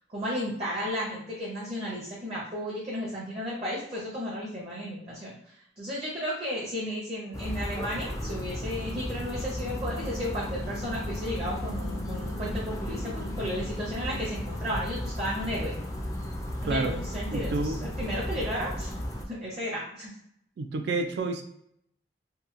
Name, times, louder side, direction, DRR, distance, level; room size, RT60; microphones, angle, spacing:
voice 1, 0.1-15.7 16.6-18.9 19.3-20.1, equal, 35° right, -7 dB, 0.7 m, -34 dB
sound 1, 7.3-19.3, left 1 dB, 15° left, 0.3 m, -34 dB
voice 2, 17.3-17.8 20.6-21.4, right 3 dB, 70° right, 5 dB, 0.3 m, -29 dB
2.8 x 2.1 x 2.4 m, 0.73 s
head